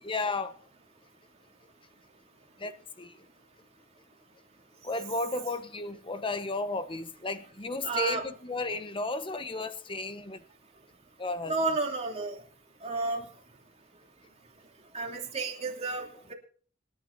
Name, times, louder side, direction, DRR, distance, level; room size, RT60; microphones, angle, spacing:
voice 1, 0.0-0.6 2.6-3.2 4.8-10.4 11.2-11.6, left 2 dB, 25° left, 1.1 m, -33 dB
voice 2, 7.8-8.2 11.5-12.4 12.8-13.3 14.9-16.3, right 3 dB, 30° right, 3.0 m, -31 dB
26.5 x 11.0 x 2.7 m
head